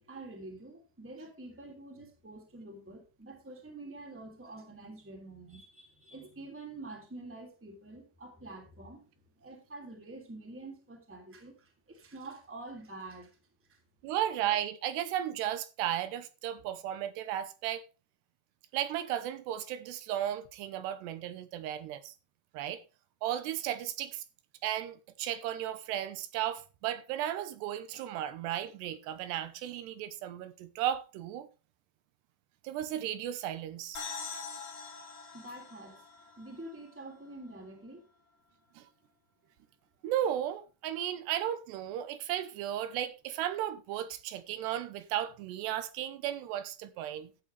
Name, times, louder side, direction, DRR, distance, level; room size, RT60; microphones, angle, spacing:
voice 1, 0.0-9.0 9.3-13.4 13.7-13.8 35.3-36.0 36.4-38.1, right 2 dB, 5° right, 2.1 m, -47 dB
voice 2, 14.0-17.8 18.7-22.1 22.5-22.8 23.2-24.2 24.6-31.5 32.6-34.0 38.8-38.9 40.0-47.3, right 11 dB, 85° right, 3.1 m, -35 dB
sound 1, 34.0-37.5, left 5 dB, 60° left, 4.4 m, -44 dB
13.5 x 8.7 x 3.3 m
omnidirectional pair, 4.8 m